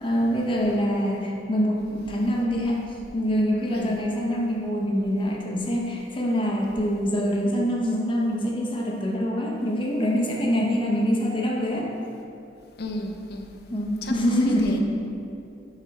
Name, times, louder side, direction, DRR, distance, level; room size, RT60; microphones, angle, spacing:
voice 1, 0.0-2.9 3.1-11.9 13.7-14.8, equal, 30° left, -2 dB, 0.8 m, -25 dB
voice 2, 3.7-4.0 12.8-13.5 14.0-14.1 14.5-14.8, left 1 dB, 60° left, 3 dB, 0.6 m, -33 dB
5.3 x 5.1 x 4.1 m, 2.6 s
head